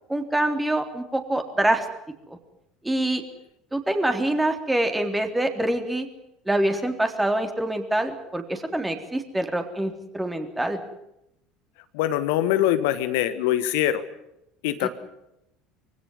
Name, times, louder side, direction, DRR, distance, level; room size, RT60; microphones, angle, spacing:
voice 1, 0.1-1.9 2.3-2.4 2.8-3.2 3.7-6.1 6.5-10.8 14.8-14.9, right 1 dB, 10° right, 5 dB, 3.6 m, -25 dB
voice 2, 11.9-14.0 14.6-14.9, left 12 dB, 65° left, 11 dB, 1.4 m, -23 dB
24.0 x 16.5 x 9.7 m, 0.84 s
figure-of-eight pair, 65°, 0 cm